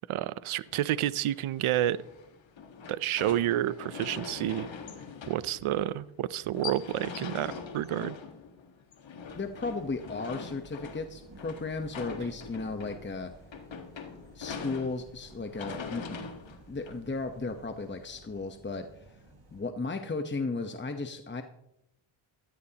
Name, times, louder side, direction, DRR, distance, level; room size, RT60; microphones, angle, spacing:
voice 1, 0.1-2.0 2.9-4.7 5.3-8.2, right 12 dB, 80° right, 18 dB, 0.6 m, -29 dB
sound 1, 0.7-17.6, left 5 dB, 65° left, 1.6 m, -43 dB
voice 2, 9.3-13.3 14.3-16.0 16.7-19.2 19.5-21.4, left 3 dB, 20° left, 6 dB, 1.0 m, -35 dB
sound 2, 9.3-19.6, right 2 dB, 50° right, 3.4 m, -55 dB
16.0 x 14.0 x 2.9 m, 0.83 s
cardioid pair, 70°, 49 cm